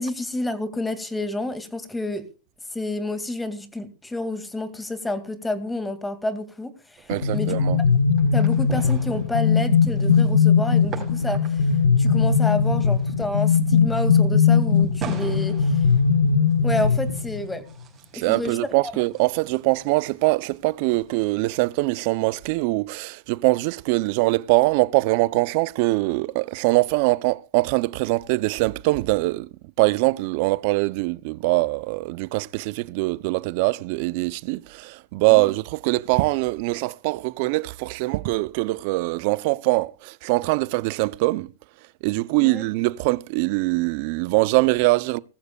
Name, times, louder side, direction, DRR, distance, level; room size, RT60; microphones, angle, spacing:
voice 1, 0.0-2.2 2.7-7.6 8.3-15.9 16.6-17.6 18.1-18.6 18.8-18.9 35.3-35.4 42.4-42.7, left 1 dB, 10° left, 2.3 m, -29 dB
sound 1, 7.0-21.8, right 8 dB, 30° right, 6.3 m, -44 dB
sound 2, 7.1-17.6, left 6 dB, 85° left, 1.2 m, -20 dB
voice 2, 7.1-7.8 18.1-29.5 29.8-41.5 42.0-45.2, right 22 dB, 55° right, 0.6 m, -23 dB
20.0 x 14.5 x 2.4 m
hypercardioid pair, 110°, 0 cm